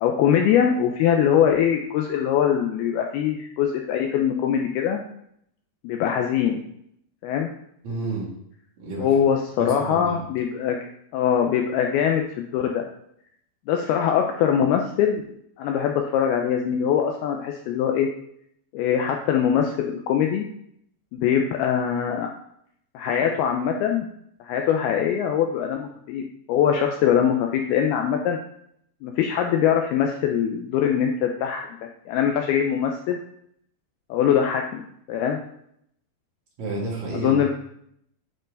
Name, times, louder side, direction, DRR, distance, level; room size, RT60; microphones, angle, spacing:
voice 1, 0.0-5.0 5.8-6.6 7.2-7.5 9.0-10.8 11.1-12.8 13.7-15.2 15.6-18.1 18.7-20.5 21.1-22.3 22.9-24.1 24.4-26.2 26.5-28.4 29.0-31.8 32.1-33.2 34.1-34.8 35.1-35.4 37.2-37.5, left 8 dB, 90° left, 3 dB, 2.2 m, -22 dB
voice 2, 7.8-8.3 8.8-9.1 9.6-10.2 36.6-37.4, right 2 dB, 50° right, -4 dB, 2.8 m, -30 dB
11.0 x 4.5 x 3.8 m, 0.71 s
omnidirectional pair, 5.1 m